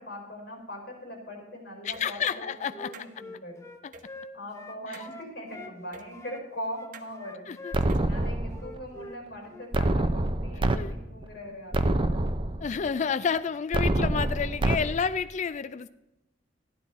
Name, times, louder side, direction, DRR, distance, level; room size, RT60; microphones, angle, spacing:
voice 1, 0.0-2.5 2.8-3.6 4.3-12.3, equal, 55° left, 0 dB, 5.0 m, -41 dB
voice 2, 1.8-2.9 3.8-3.9 4.9-5.0 7.5-7.7 10.7-10.9 12.6-15.9, left 6 dB, 40° left, 13 dB, 0.3 m, -30 dB
sound 1, 1.9-2.1 2.9-3.1 3.9-4.1 4.9-5.1 5.9-6.1 6.9-7.1 7.8-8.1, right 3 dB, 45° right, 1.0 m, -46 dB
Wind instrument woodwind instrument, 2.3-5.8 6.1-9.2 9.5-9.7, left 2 dB, 15° left, 0.7 m, -45 dB
sound 2, 7.7-8.7 9.7-10.8 11.2-11.3 11.7-12.7 13.7-14.8, right 1 dB, 30° right, 0.6 m, -26 dB
14.5 x 11.0 x 4.2 m, 0.93 s
head